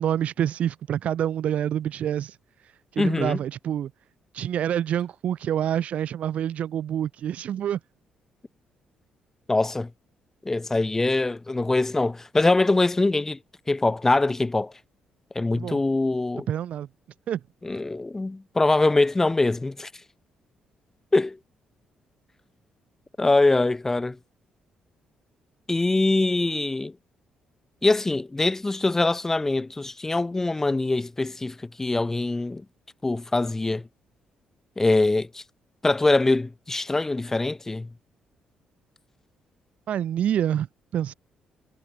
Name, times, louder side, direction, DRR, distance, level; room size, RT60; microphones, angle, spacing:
voice 1, 0.0-3.9 4.3-7.8 15.5-15.8 16.5-16.9 17.3-17.4 39.9-40.7 40.9-41.1, right 10 dB, 65° right, 0.8 m, -27 dB
voice 2, 3.0-3.4 9.5-9.9 10.4-13.4 13.7-14.7 15.3-16.5 17.6-19.9 21.1-21.4 23.2-24.2 25.7-26.9 27.8-32.6 33.0-33.8 34.8-35.4 35.8-37.9, left 2 dB, 15° left, 1.1 m, -23 dB
cardioid pair, 95°, 2 cm